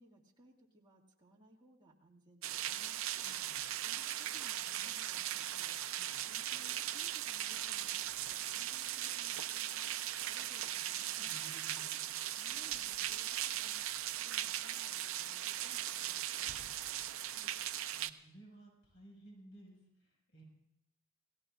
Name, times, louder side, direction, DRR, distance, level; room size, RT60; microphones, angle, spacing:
voice 1, 0.0-3.0 3.8-5.8 6.2-9.9 10.2-11.4 12.3-13.7 14.1-16.5, right 1 dB, 20° right, -2 dB, 2.1 m, -62 dB
sound 1, 2.4-18.1, right 12 dB, 65° right, 0.6 m, -38 dB
voice 2, 3.0-3.8 6.0-6.3 11.2-12.2 17.1-17.5 17.9-20.4, right 1 dB, 65° left, -1 dB, 6.0 m, -58 dB
29.0 x 17.5 x 2.5 m, 0.78 s
head